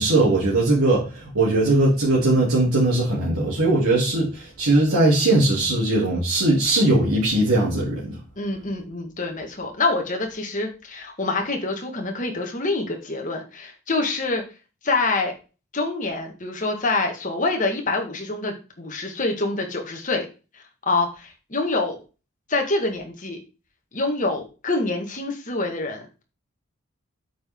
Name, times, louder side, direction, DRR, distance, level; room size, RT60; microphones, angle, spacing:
voice 1, 0.0-8.0, right 2 dB, 85° right, -6 dB, 3.0 m, -20 dB
voice 2, 8.4-14.4 14.8-15.3 15.7-20.3 20.5-22.0 22.5-23.4 23.9-26.2, left 3 dB, 35° left, 3 dB, 1.8 m, -26 dB
8.5 x 5.9 x 3.7 m, 0.32 s
head